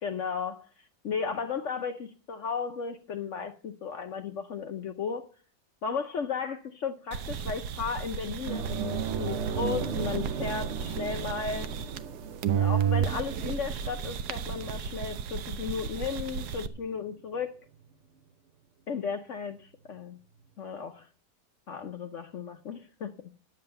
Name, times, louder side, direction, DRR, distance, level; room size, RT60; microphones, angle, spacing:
voice 1, 0.0-0.7 1.0-5.3 5.8-11.7 12.6-17.5 18.9-20.2 20.6-21.1 21.7-23.1, left 6 dB, 55° left, 1.0 m, -35 dB
sound 1, 7.1-12.2 12.4-16.7, right 8 dB, 75° right, 1.3 m, -32 dB
sound 2, 8.5-17.4 17.7-17.9 20.0-20.1, right 6 dB, 55° right, 0.9 m, -37 dB
10.5 x 7.4 x 6.8 m
omnidirectional pair, 1.7 m